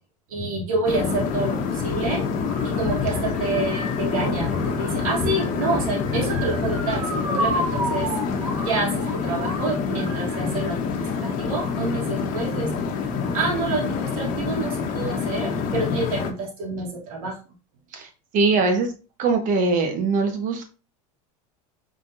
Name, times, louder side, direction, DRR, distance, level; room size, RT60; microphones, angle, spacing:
voice 1, 0.3-17.4, right 2 dB, 85° right, -2 dB, 1.6 m, -28 dB
sound 1, 0.8-16.3, left 5 dB, 50° left, 1.1 m, -26 dB
voice 2, 17.9-18.9 19.2-20.6, right 4 dB, 45° right, 5 dB, 1.3 m, -22 dB
5.3 x 3.6 x 2.6 m, 0.34 s
supercardioid pair, 115°, 18 cm